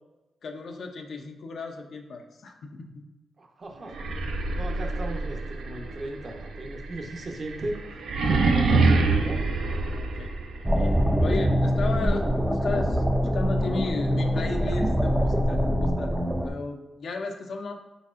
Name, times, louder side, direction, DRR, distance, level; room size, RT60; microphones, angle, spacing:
voice 1, 0.4-3.1 4.2-4.3 8.4-8.5 9.9-10.3 10.7-13.0 13.3-16.1 16.4-17.7, left 3 dB, 65° left, 4 dB, 0.5 m, -34 dB
voice 2, 3.4-4.0 4.5-7.8 8.3-9.5, right 1 dB, 40° right, 2 dB, 0.7 m, -37 dB
sound 1, 3.9-10.8, right 3 dB, 80° right, 0.5 m, -26 dB
sound 2, 10.7-16.5, equal, 5° right, 0.4 m, -24 dB
4.0 x 4.0 x 2.5 m, 1.0 s
cardioid pair, 90°, 0 cm